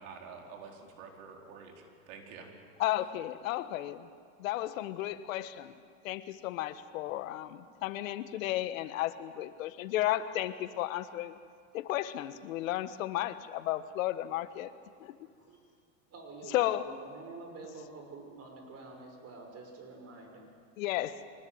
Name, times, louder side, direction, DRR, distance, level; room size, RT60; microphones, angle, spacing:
voice 1, 0.0-2.5, right 5 dB, 70° right, 1 dB, 4.5 m, -48 dB
voice 2, 2.8-4.1 4.4-5.7 6.0-11.4 11.7-14.7 15.0-15.2 16.5-16.9 20.8-21.2, left 14 dB, 80° left, 13 dB, 1.3 m, -33 dB
voice 3, 16.1-20.5, right 3 dB, 40° right, 3 dB, 6.0 m, -48 dB
24.0 x 19.5 x 7.9 m, 2.1 s
supercardioid pair, 100°, 40 cm